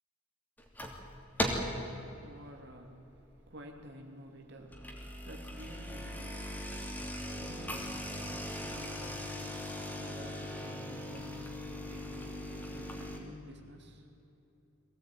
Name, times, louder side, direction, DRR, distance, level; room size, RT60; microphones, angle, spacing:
sound 1, 0.6-1.0 1.4-1.8 2.3-2.6 3.1-3.2 3.5-3.6 4.6-13.2, equal, 10° left, 2.8 m, -39 dB
voice 1, 1.4-14.1, equal, 50° right, 3 dB, 2.8 m, -52 dB
23.0 x 17.5 x 9.4 m, 2.9 s
head